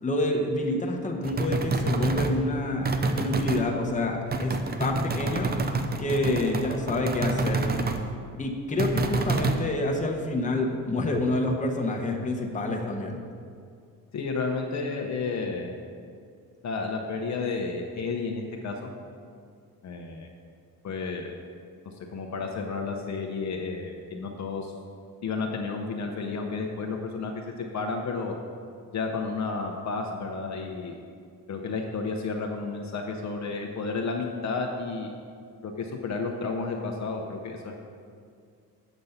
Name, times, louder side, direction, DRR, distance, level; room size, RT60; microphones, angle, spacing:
voice 1, 0.0-5.5 6.0-7.7 8.4-13.2, left 2 dB, 20° left, 1 dB, 1.0 m, -28 dB
sound 1, 1.2-2.4 2.8-3.6 4.3-8.0 8.8-9.6, right 3 dB, 25° right, 0.5 m, -27 dB
voice 2, 14.1-15.7 16.6-18.9 19.8-20.3 20.8-21.3 21.8-24.7 25.2-28.3 28.9-31.0 31.5-35.1 35.6-37.8, left 4 dB, 50° left, 2 dB, 0.8 m, -32 dB
8.0 x 5.2 x 5.6 m, 2.2 s
cardioid pair, 115°, 36 cm